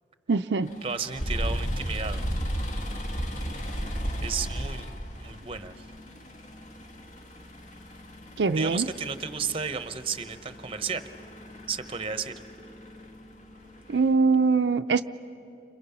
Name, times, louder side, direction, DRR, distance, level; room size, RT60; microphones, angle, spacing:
voice 1, 0.3-0.7 8.4-8.9 13.9-15.0, right 4 dB, 85° right, 8 dB, 0.5 m, -22 dB
sound 1, 0.6-14.1, equal, 50° left, 1.5 m, -35 dB
voice 2, 0.8-2.3 3.5-3.6 4.2-4.9 5.2-5.8 8.6-11.1 11.7-12.3, right 6 dB, 30° right, 10 dB, 0.8 m, -33 dB
30.0 x 26.5 x 5.7 m, 2.6 s
head